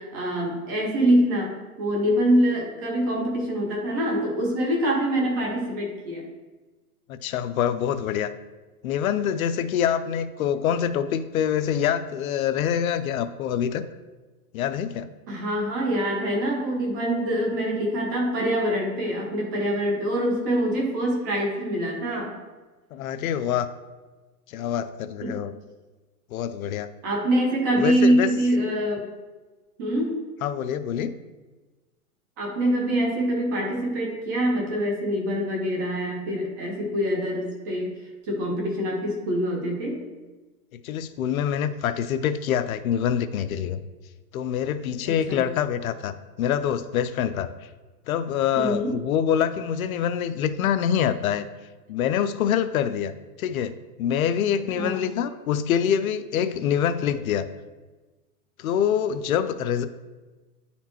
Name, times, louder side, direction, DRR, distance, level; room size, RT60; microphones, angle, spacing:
voice 1, 0.0-6.3 15.3-22.4 25.2-25.4 27.0-29.0 29.8-30.2 32.4-37.9 38.3-40.0 45.0-45.4 48.5-49.0 54.8-55.0, equal, 15° right, 0 dB, 0.3 m, -25 dB
voice 2, 7.1-8.3 8.8-13.9 14.5-15.1 22.9-23.7 24.5-25.5 26.3-26.9 27.8-28.3 30.4-31.2 40.7-43.8 44.3-47.5 48.1-51.4 51.9-53.1 53.4-57.5 58.6-59.9, left 9 dB, 70° left, 11 dB, 0.5 m, -25 dB
9.9 x 4.3 x 2.9 m, 1.2 s
hypercardioid pair, 150°, 44 cm